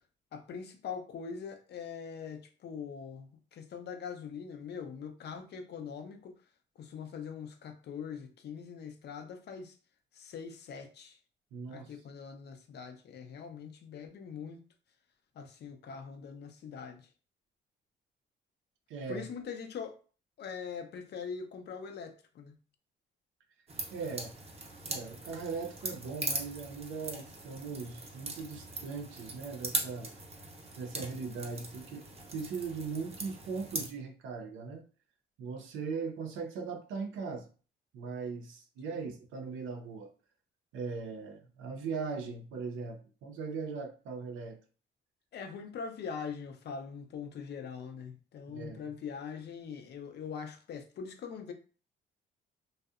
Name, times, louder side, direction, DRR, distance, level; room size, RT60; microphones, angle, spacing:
voice 1, 0.3-6.3 6.8-9.7 10.1-11.2 11.7-14.6 15.4-17.1 19.1-20.0 20.4-22.6 38.9-39.0 45.3-51.5, left 6 dB, 60° left, 0.5 m, -42 dB
voice 2, 11.5-11.9 18.9-19.3 23.9-24.3 24.9-30.1 30.8-32.0 32.3-34.8 35.4-37.5 37.9-40.1 40.7-44.6 48.5-48.9, right 5 dB, 85° right, 0.5 m, -39 dB
sound 1, 23.7-33.9, right 2 dB, 30° right, 0.6 m, -40 dB
2.6 x 2.0 x 2.4 m
cardioid pair, 90°, 20 cm